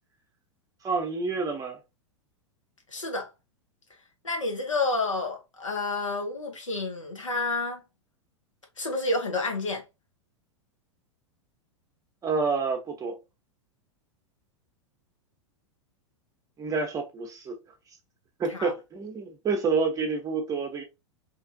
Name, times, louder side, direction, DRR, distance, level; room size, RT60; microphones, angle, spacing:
voice 1, 0.8-1.8 12.2-13.2 16.6-17.6 18.4-20.8, right 4 dB, 20° right, 0.8 m, -28 dB
voice 2, 2.9-3.3 4.2-7.8 8.8-9.8 18.5-18.7, left 3 dB, 85° left, 1.0 m, -29 dB
2.9 x 2.4 x 2.6 m
figure-of-eight pair, 95°, 16 cm